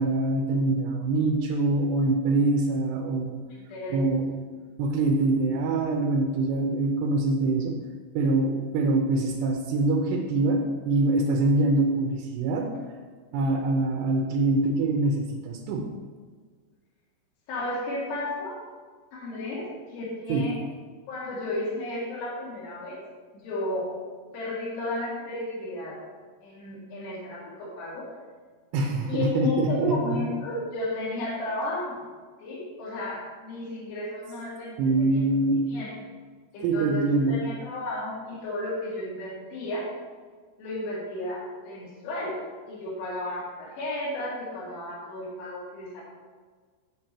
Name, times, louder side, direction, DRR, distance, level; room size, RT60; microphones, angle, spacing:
voice 1, 0.0-3.4 3.9-4.3 4.8-7.8 8.2-12.7 13.3-15.8 20.3-20.4 28.7-30.2 34.8-35.5 36.6-37.4, right 2 dB, 90° right, 1 dB, 3.0 m, -24 dB
voice 2, 3.5-4.0 17.5-18.6 19.1-20.6 21.1-23.0 23.3-24.0 24.3-26.0 26.4-28.1 29.1-32.1 32.4-35.1 35.5-35.9 36.5-39.9 40.6-42.4 42.7-46.0, left 2 dB, 90° left, -4 dB, 4.3 m, -33 dB
8.3 x 7.6 x 4.2 m, 1.5 s
omnidirectional pair, 4.8 m